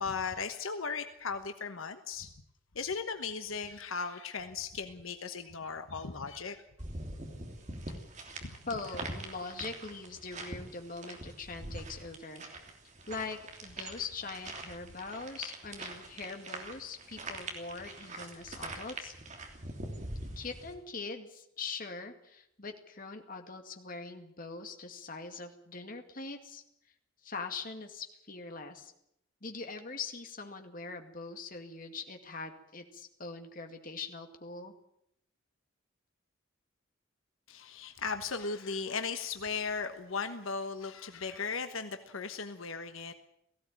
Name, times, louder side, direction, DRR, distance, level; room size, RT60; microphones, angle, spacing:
voice 1, 0.0-2.3 2.7-6.6 8.4-8.5 37.5-43.1, left 5 dB, 80° left, 8 dB, 1.2 m, -37 dB
sound 1, 6.8-20.7, right 2 dB, 35° right, 3.1 m, -44 dB
voice 2, 8.7-12.4 13.1-19.1 20.4-26.6 27.2-28.9 29.4-34.7, left 4 dB, 40° left, 5 dB, 2.2 m, -42 dB
18.0 x 16.0 x 9.2 m, 0.75 s
head